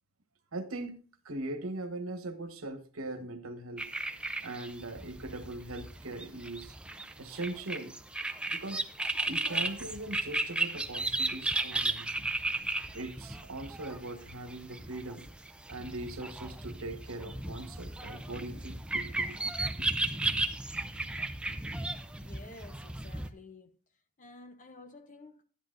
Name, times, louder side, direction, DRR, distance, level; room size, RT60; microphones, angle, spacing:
voice 1, 0.5-1.0 1.2-3.9 4.4-6.8 7.2-8.0 8.5-8.8 9.3-12.1 12.9-15.2 15.7-19.5, right 2 dB, 85° right, 1.2 m, -40 dB
sound 1, 3.8-23.3, right 2 dB, 5° right, 0.5 m, -35 dB
voice 2, 22.2-23.8 24.2-25.4, left 2 dB, 40° left, 0.9 m, -51 dB
11.5 x 10.5 x 2.6 m
head